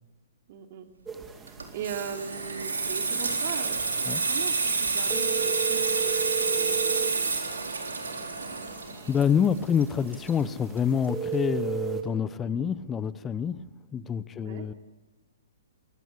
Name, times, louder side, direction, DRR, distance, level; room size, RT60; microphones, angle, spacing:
voice 1, 0.5-0.9 1.5-7.6 12.4-12.6 14.4-14.6, right 7 dB, 45° right, 4 dB, 3.0 m, -40 dB
sound 1, 1.1-12.0, right 8 dB, 10° right, 2.6 m, -36 dB
Water tap faucet / Sink (filling or washing), 1.5-10.8 11.1-11.3, right 4 dB, 80° right, 4.0 m, -29 dB
voice 2, 9.1-13.6 13.9-14.7, left 7 dB, 15° left, 17 dB, 0.9 m, -27 dB
24.0 x 17.0 x 8.3 m, 1.2 s
figure-of-eight pair, 120°, 0 cm